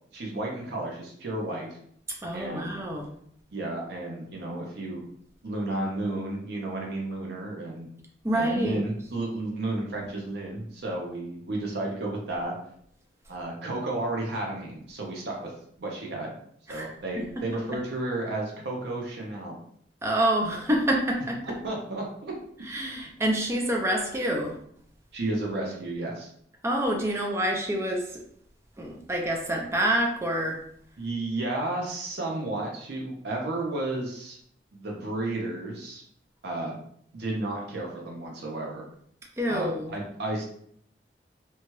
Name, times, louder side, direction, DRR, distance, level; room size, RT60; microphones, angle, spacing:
voice 1, 0.1-1.8 2.3-2.7 3.5-5.0 5.4-7.9 8.3-12.6 13.3-15.5 15.8-16.3 16.7-19.6 21.6-22.3 23.0-23.1 25.1-26.3 31.0-34.4 34.7-36.0 36.4-36.8 37.1-38.8 39.5-40.4, right 2 dB, 65° right, -1 dB, 0.6 m, -32 dB
voice 2, 2.2-3.1 8.2-8.8 16.7-16.9 17.2-17.4 20.0-21.6 22.7-24.5 26.6-28.2 28.8-30.6 39.4-39.9, right 1 dB, 15° right, 1 dB, 0.5 m, -27 dB
2.9 x 2.3 x 3.0 m, 0.65 s
head